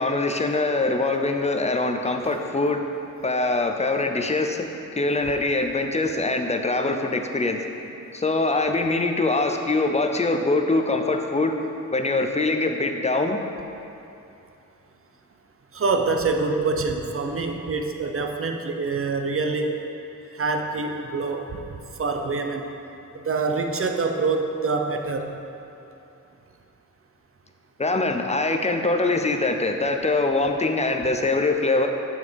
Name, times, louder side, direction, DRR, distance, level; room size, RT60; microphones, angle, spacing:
voice 1, 0.0-2.8 3.2-4.7 5.0-7.6 8.1-11.5 11.9-13.4 27.8-31.9, left 2 dB, 20° left, 5 dB, 0.5 m, -23 dB
voice 2, 15.7-19.7 20.4-21.4 22.0-22.7 23.3-25.3, right 4 dB, 45° right, 4 dB, 0.7 m, -25 dB
7.3 x 6.8 x 5.1 m, 2.8 s
wide cardioid pair, 130°, 31 cm